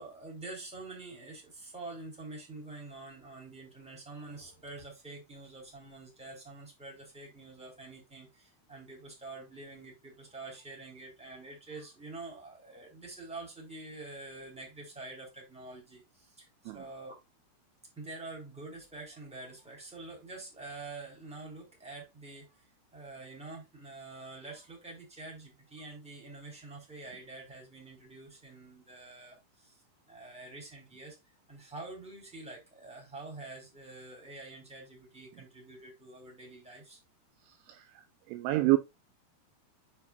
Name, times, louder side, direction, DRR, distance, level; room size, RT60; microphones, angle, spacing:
voice 1, 0.0-17.2 17.9-29.8 30.1-31.2 31.5-37.0, right 2 dB, ahead, 3.3 m, -47 dB
voice 2, 37.7-38.0 38.3-38.8, right 19 dB, 85° right, 2.7 m, -27 dB
8.5 x 6.6 x 2.5 m
omnidirectional pair, 5.9 m